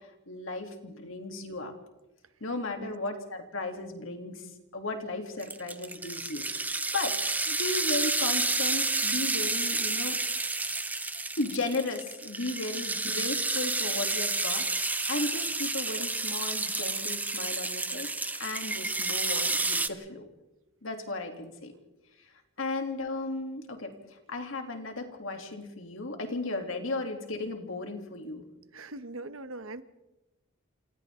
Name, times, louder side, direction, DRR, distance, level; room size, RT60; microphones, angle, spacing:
voice 1, 0.3-1.7 2.4-7.2 7.5-10.4 11.4-14.7 15.1-18.1 18.4-20.3 20.8-21.7 22.6-28.4, left 2 dB, 70° left, 3 dB, 3.1 m, -35 dB
sound 1, 5.4-19.9, right 3 dB, 10° right, 0.7 m, -30 dB
voice 2, 28.7-29.8, right 2 dB, 80° right, 11 dB, 1.2 m, -41 dB
28.0 x 27.5 x 3.8 m, 0.98 s
head